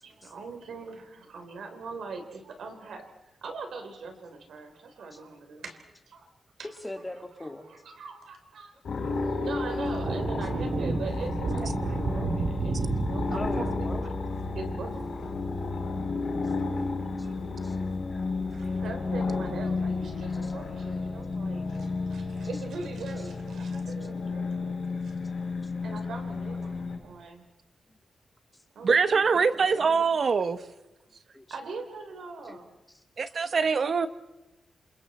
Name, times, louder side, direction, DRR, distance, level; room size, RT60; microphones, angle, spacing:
voice 1, 0.0-3.1 3.4-5.8 6.1-6.3 6.6-6.7 7.4-8.8 9.1-13.9 14.5-15.1 18.5-24.8 25.0-25.1 25.8-27.4 28.8-30.2 31.5-32.8, right 4 dB, 90° right, 5 dB, 3.6 m, -41 dB
voice 2, 6.8-7.7 13.3-14.3 16.6-16.8 17.1-17.8 18.1-18.2 18.7-18.8 20.4-20.5 31.3-31.4 32.5-32.6, left 1 dB, 10° left, 5 dB, 2.0 m, -41 dB
sound 1, 8.8-27.0, left 3 dB, 60° left, 6.1 m, -32 dB
sound 2, 9.8-15.4, right 3 dB, 60° right, 3.1 m, -32 dB
voice 3, 28.8-30.6 33.2-34.1, right 5 dB, 45° right, 12 dB, 1.0 m, -24 dB
28.5 x 27.5 x 4.3 m, 0.95 s
wide cardioid pair, 180°, 0 cm